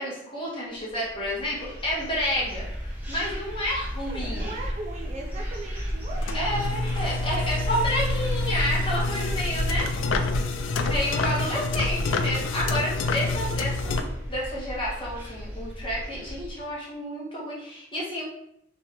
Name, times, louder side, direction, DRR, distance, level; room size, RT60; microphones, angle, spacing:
voice 1, 0.0-2.7 3.1-4.5 6.3-9.9 10.9-14.0 14.3-18.2, equal, 25° left, -5 dB, 1.1 m, -30 dB
sound 1, 0.9-16.6, equal, 10° right, 1.0 m, -33 dB
voice 2, 4.1-6.6, right 2 dB, 35° right, 1 dB, 0.4 m, -38 dB
sound 2, 6.1-14.0, left 3 dB, 85° left, 0.4 m, -28 dB
3.2 x 3.1 x 2.9 m, 0.76 s
head